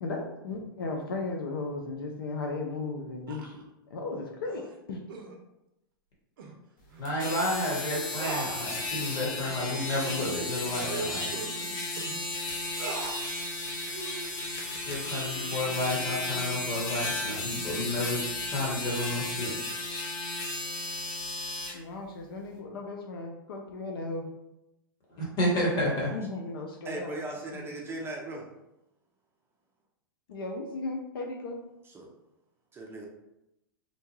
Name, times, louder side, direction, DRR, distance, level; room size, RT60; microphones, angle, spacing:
voice 1, 0.0-5.0 21.7-24.2 26.1-27.2 27.5-27.6 30.3-31.6, left 3 dB, 80° left, 1 dB, 0.5 m, -36 dB
sound 1, 3.3-3.6 4.4-4.7 5.1-5.3 6.4-6.5 6.9-7.1 7.4-7.5 8.2-9.1 9.5-9.7 10.1-10.2 10.7-12.2 12.8-13.3 13.9-14.3, right 4 dB, 70° right, 0.5 m, -39 dB
sound 2, 7.0-21.7, left 2 dB, 55° left, 0.9 m, -34 dB
voice 2, 7.0-11.3 14.7-19.6 25.1-26.1, left 1 dB, 35° left, -4 dB, 1.2 m, -31 dB
voice 3, 26.8-28.5 31.9-32.1 32.7-33.1, right 1 dB, 20° right, -1 dB, 0.5 m, -38 dB
2.7 x 2.2 x 3.0 m, 0.89 s
hypercardioid pair, 105°, 12 cm